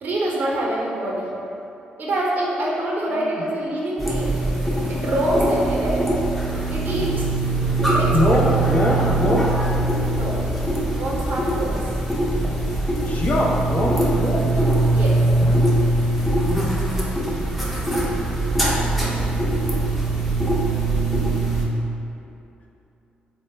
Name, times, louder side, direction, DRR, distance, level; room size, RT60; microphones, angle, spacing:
voice 1, 0.0-1.3 2.0-4.4 4.9-6.0 6.7-7.2 7.8-8.4 10.0-10.4 10.9-11.7 14.9-15.2, right 1 dB, 55° right, -3 dB, 0.6 m, -25 dB
voice 2, 3.1-3.4 7.0-7.8 8.1-9.8 13.0-14.6 15.2-15.8, left 1 dB, 45° left, -3 dB, 0.5 m, -24 dB
sound 1, 4.0-21.7, right 2 dB, ahead, 0.5 m, -22 dB
3.2 x 2.0 x 3.2 m, 2.8 s
cardioid pair, 70°, 4 cm